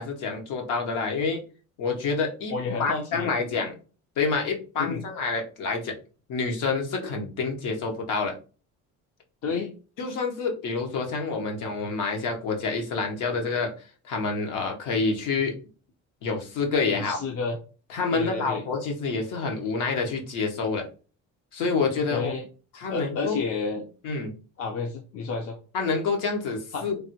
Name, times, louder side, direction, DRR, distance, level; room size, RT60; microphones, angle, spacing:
voice 1, 0.0-1.4 1.8-3.7 4.2-5.9 6.3-8.3 10.0-13.7 14.1-15.5 16.2-17.2 17.9-20.9 21.5-22.3 22.7-23.4 24.0-24.3 25.7-27.0, left 4 dB, 75° left, 3 dB, 0.9 m, -28 dB
voice 2, 2.5-3.4 4.8-5.0 9.4-9.7 16.9-17.6 18.1-18.6 22.1-22.4 22.9-23.9 24.6-25.6 26.7-26.9, left 4 dB, 45° left, 3 dB, 0.5 m, -30 dB
3.3 x 2.1 x 2.9 m, 0.36 s
cardioid pair, 100°, 32 cm